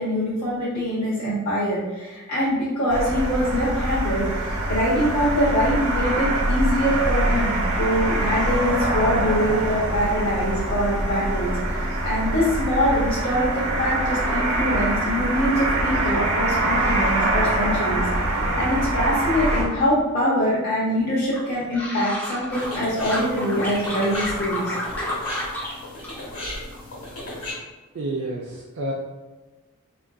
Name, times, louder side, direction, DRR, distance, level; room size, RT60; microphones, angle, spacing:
voice 1, 0.0-24.7, equal, 45° left, -8 dB, 0.6 m, -24 dB
sound 1, 2.9-19.6, right 1 dB, 80° right, 0.8 m, -24 dB
sound 2, 21.3-22.8 23.1-25.7 26.0-26.8 27.1-27.6, left 1 dB, 5° left, 0.4 m, -31 dB
sound 3, 22.5-27.5, left 1 dB, 75° left, 1.1 m, -35 dB
voice 2, 27.9-28.9, right 2 dB, 65° right, -3 dB, 0.4 m, -29 dB
3.7 x 2.4 x 2.2 m, 1.2 s
head